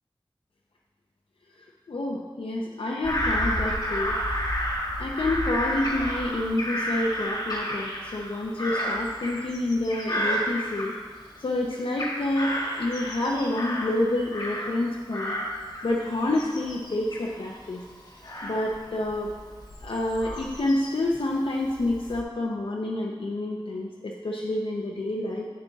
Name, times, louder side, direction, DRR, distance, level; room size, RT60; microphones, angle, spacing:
voice 1, 1.6-4.2 5.0-11.0 11.4-15.4 15.8-17.8 18.4-19.3 19.8-25.5, left 1 dB, 85° left, -2 dB, 0.7 m, -28 dB
Bird vocalization bird call bird song / Crow, 3.0-11.4 11.7-14.8 15.1-21.1 21.6-22.2, equal, 45° left, 1.7 m, -31 dB
8.7 x 6.8 x 3.6 m, 1.5 s
wide cardioid pair, 70°, 9 cm